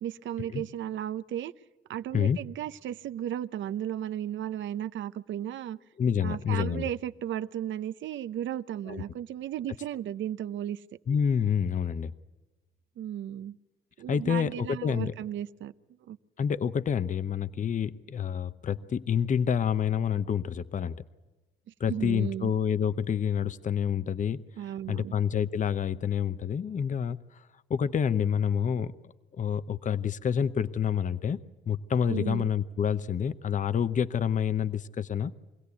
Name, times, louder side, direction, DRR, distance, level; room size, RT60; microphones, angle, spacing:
voice 1, 0.0-1.5 1.9-5.8 6.2-10.8 13.0-13.6 14.0-15.7 16.1-16.2 21.9-22.5 24.6-25.1 32.1-32.5, right 11 dB, 70° right, 13 dB, 0.8 m, -35 dB
voice 2, 6.0-6.9 8.9-9.0 11.1-12.1 14.1-15.1 16.4-21.0 21.8-28.9 29.4-31.4 31.7-35.3, left 8 dB, 40° left, 14 dB, 0.7 m, -28 dB
24.0 x 17.0 x 8.3 m, 1.2 s
cardioid pair, 90°, 20 cm